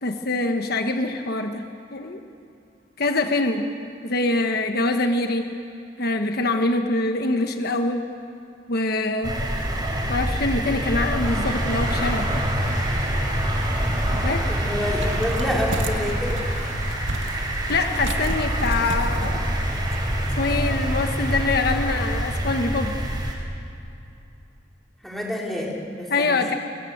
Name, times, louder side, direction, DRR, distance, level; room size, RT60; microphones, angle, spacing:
voice 1, 0.0-1.6 1.9-2.2 3.0-3.7 4.0-5.5 6.0-8.0 8.7-9.4 10.1-12.4 14.1-14.5 17.7-19.4 20.4-23.0 26.1-26.5, left 2 dB, 55° left, 5 dB, 1.3 m, -24 dB
sound 1, 9.2-23.4, equal, 25° right, 4.1 m, -26 dB
sound 2, 11.2-23.3, right 1 dB, 45° right, 7.5 m, -35 dB
voice 2, 14.5-16.5 25.0-26.6, left 1 dB, ahead, -3 dB, 3.9 m, -28 dB
sound 3, 15.0-20.3, right 2 dB, 80° right, 1.8 m, -35 dB
26.0 x 23.0 x 8.0 m, 2.7 s
head